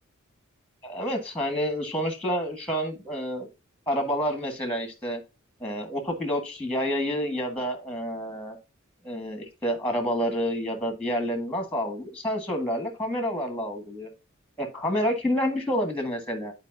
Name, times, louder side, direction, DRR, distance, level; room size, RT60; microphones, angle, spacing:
voice 1, 0.8-3.5 3.9-5.2 5.6-8.6 9.0-14.1 14.6-16.5, equal, 5° left, 5 dB, 1.6 m, -29 dB
10.5 x 4.7 x 2.6 m, 0.27 s
head